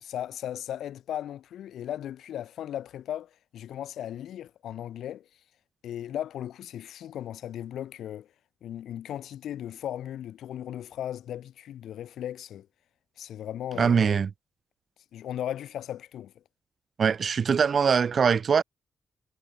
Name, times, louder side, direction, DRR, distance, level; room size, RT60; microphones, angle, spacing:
voice 1, 0.0-5.3 5.8-8.3 8.6-12.7 13.2-14.2 15.1-16.3, left 11 dB, 85° left, 1.8 m, -37 dB
voice 2, 13.8-14.3 17.0-18.6, right 6 dB, 50° right, 0.4 m, -22 dB
cardioid pair, 110°, 0 cm